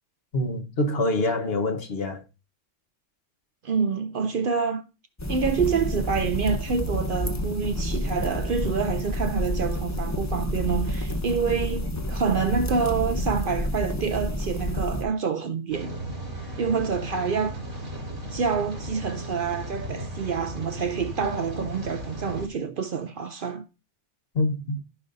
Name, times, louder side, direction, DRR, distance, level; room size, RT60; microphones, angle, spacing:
voice 1, 0.3-2.2 24.3-24.8, left 2 dB, 55° left, 1.2 m, -25 dB
voice 2, 3.6-4.8 5.3-15.9 16.6-17.6 18.3-23.6, right 5 dB, 55° right, 0.7 m, -27 dB
sound 1, 5.2-15.0, equal, 20° left, 0.5 m, -29 dB
Rain, 15.7-22.5, right 1 dB, 85° right, 2.3 m, -36 dB
14.5 x 5.2 x 2.6 m
omnidirectional pair, 1.2 m